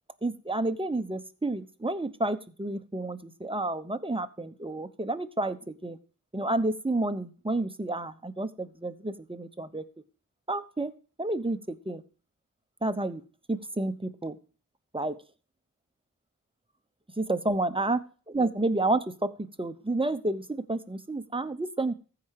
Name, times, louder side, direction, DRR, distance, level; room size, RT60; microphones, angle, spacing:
voice 1, 0.2-6.0 6.3-9.8 10.5-10.9 11.2-12.0 12.8-13.2 13.5-14.4 14.9-15.2 17.2-18.0 18.3-21.9, right 2 dB, 15° right, 10 dB, 1.0 m, -30 dB
15.0 x 4.9 x 4.8 m, 0.39 s
wide cardioid pair, 45°, 36 cm